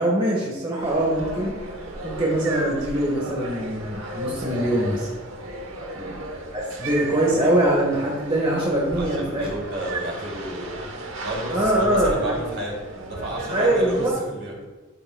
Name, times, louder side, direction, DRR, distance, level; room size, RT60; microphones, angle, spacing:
voice 1, 0.0-1.5 2.0-5.1 6.5-9.5 11.5-12.4 13.5-14.1, right 1 dB, 25° right, -4 dB, 1.5 m, -23 dB
sound 1, 0.8-14.1, right 1 dB, 85° right, 1.2 m, -35 dB
voice 2, 9.0-10.9 11.2-14.6, right 1 dB, 60° right, -3 dB, 3.1 m, -32 dB
12.5 x 8.7 x 2.4 m, 1.3 s
head